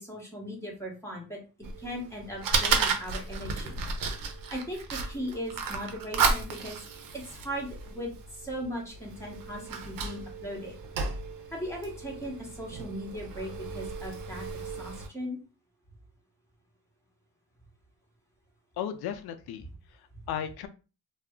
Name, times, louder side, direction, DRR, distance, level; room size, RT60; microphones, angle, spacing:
voice 1, 0.0-1.4 1.8-3.8 4.5-6.8 7.1-8.1 8.4-10.7 11.5-14.5 14.8-15.4, equal, 5° left, -2 dB, 1.1 m, -38 dB
Fire, 1.6-15.1, right 5 dB, 60° right, 0.7 m, -33 dB
voice 2, 18.8-20.7, left 9 dB, 70° left, 9 dB, 0.5 m, -36 dB
2.3 x 2.0 x 3.6 m, 0.33 s
cardioid pair, 80°, 39 cm